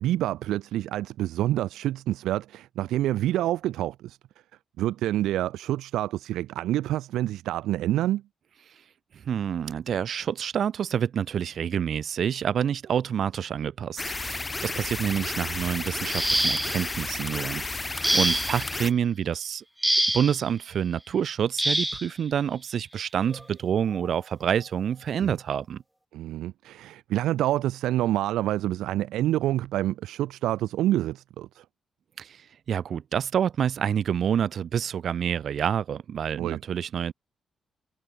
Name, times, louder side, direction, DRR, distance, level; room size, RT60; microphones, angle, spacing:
voice 1, 0.0-4.2 4.8-8.2 25.2-25.4 26.1-31.6 36.4-36.6, right 14 dB, 85° right, 0.4 m, -27 dB
voice 2, 9.3-19.6 20.1-25.8 32.2-32.4 32.7-37.1, right 8 dB, 65° right, 1.8 m, -28 dB
sound 1, 14.0-18.9, left 3 dB, 30° left, 1.0 m, -32 dB
sound 2, 16.0-16.9 18.0-18.7 19.8-20.4 21.6-22.1 23.3-23.4 23.9-24.1, right 1 dB, 10° right, 0.7 m, -25 dB
supercardioid pair, 50°, 0 cm